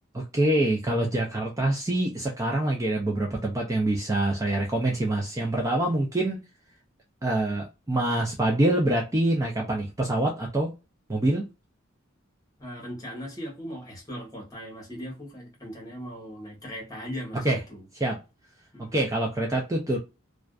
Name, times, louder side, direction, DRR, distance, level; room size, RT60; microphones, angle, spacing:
voice 1, 0.1-6.4 7.2-10.7 11.1-11.4 17.4-17.6 17.9-18.2 18.8-20.0, right 1 dB, 15° right, 0.4 m, -25 dB
voice 2, 12.6-17.4 17.7-17.9 18.7-19.0, equal, 15° left, 1.0 m, -38 dB
2.5 x 2.2 x 2.2 m
head